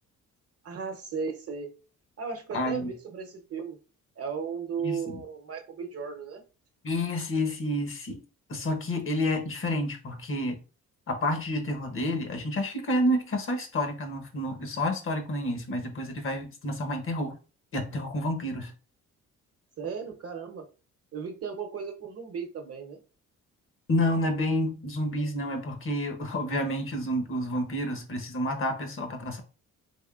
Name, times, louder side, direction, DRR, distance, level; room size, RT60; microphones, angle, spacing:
voice 1, 0.6-1.7 2.2-3.8 4.2-6.4 19.8-20.6 21.1-23.0, right 6 dB, 50° right, 0.8 m, -35 dB
voice 2, 2.5-2.9 4.8-5.2 6.8-8.2 8.5-10.6 11.1-17.3 17.7-18.7 23.9-29.4, left 1 dB, 45° left, 0.9 m, -29 dB
3.5 x 3.1 x 2.4 m
cardioid pair, 90°, 30 cm